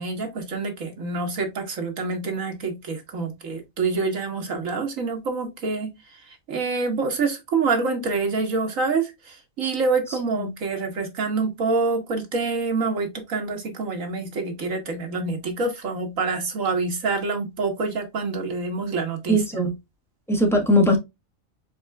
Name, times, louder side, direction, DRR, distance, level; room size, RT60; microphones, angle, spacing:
voice 1, 0.0-19.4, right 4 dB, 75° right, 1.9 m, -26 dB
voice 2, 19.3-19.7 20.3-21.0, equal, ahead, 1.4 m, -19 dB
5.2 x 4.2 x 2.3 m
omnidirectional pair, 1.4 m